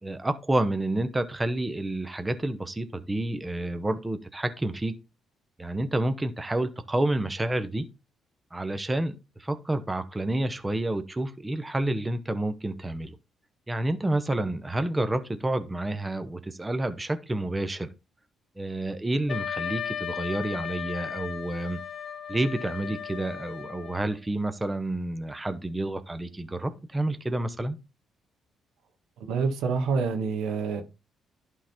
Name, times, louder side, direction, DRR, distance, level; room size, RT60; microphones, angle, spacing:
voice 1, 0.0-4.9 5.6-7.9 8.5-9.1 9.4-13.1 13.7-17.9 18.6-21.8 22.3-27.8, right 1 dB, 15° right, 0.9 m, -29 dB
Wind instrument woodwind instrument, 19.3-24.2, left 8 dB, 50° left, 1.0 m, -36 dB
voice 2, 29.3-30.8, right 5 dB, 85° right, 1.6 m, -27 dB
11.5 x 3.8 x 4.4 m
cardioid pair, 90°, 0 cm